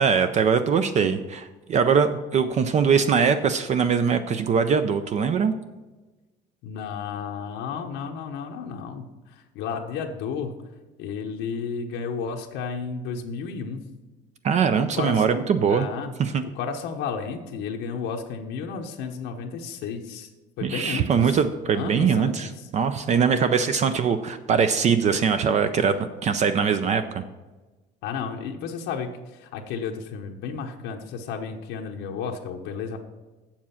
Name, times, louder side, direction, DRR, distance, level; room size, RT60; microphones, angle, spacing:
voice 1, 0.0-5.5 14.4-15.9 16.2-16.4 20.6-27.2, right 6 dB, 40° right, 10 dB, 0.5 m, -22 dB
voice 2, 6.6-10.6 11.0-13.9 14.8-15.2 15.7-16.1 16.5-20.3 20.6-21.4 21.7-22.7 28.0-33.0, left 6 dB, 85° left, 2 dB, 0.9 m, -32 dB
7.4 x 7.2 x 5.7 m, 1.2 s
cardioid pair, 130°, 19 cm